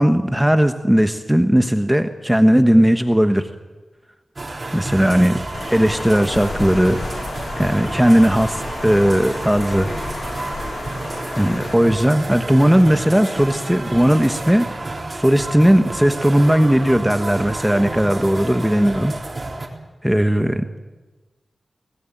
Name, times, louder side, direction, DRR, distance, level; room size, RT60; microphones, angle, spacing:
voice 1, 0.0-3.5 4.7-5.4 5.7-7.0 7.5-9.9 11.4-14.7 15.1-19.1 20.0-20.6, equal, 5° right, 7 dB, 1.2 m, -17 dB
sound 1, 4.4-19.7, right 2 dB, 35° right, 4.0 m, -30 dB
Water, 5.5-11.7, left 4 dB, 75° left, 1.7 m, -32 dB
23.5 x 18.5 x 9.1 m, 1.2 s
wide cardioid pair, 85°, 0 cm